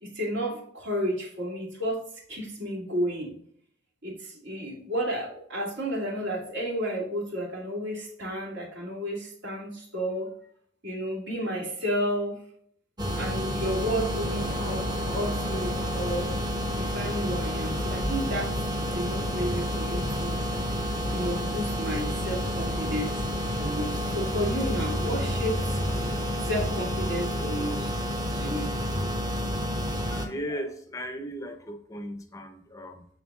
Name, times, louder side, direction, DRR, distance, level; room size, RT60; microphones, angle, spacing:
voice 1, 0.0-2.0 2.3-3.3 4.0-10.3 10.8-12.4 13.1-14.8 15.1-16.3 16.8-18.5 18.9-20.4 21.1-23.2 23.6-25.8 26.5-27.9 28.3-28.7, equal, 70° right, -2 dB, 2.7 m, -32 dB
sound 1, 13.0-30.3, equal, 20° right, 0.9 m, -30 dB
sound 2, 13.6-26.7, equal, 90° right, 2.0 m, -41 dB
voice 2, 29.9-33.1, equal, 15° left, 6 dB, 0.6 m, -37 dB
7.3 x 6.5 x 2.4 m, 0.64 s
head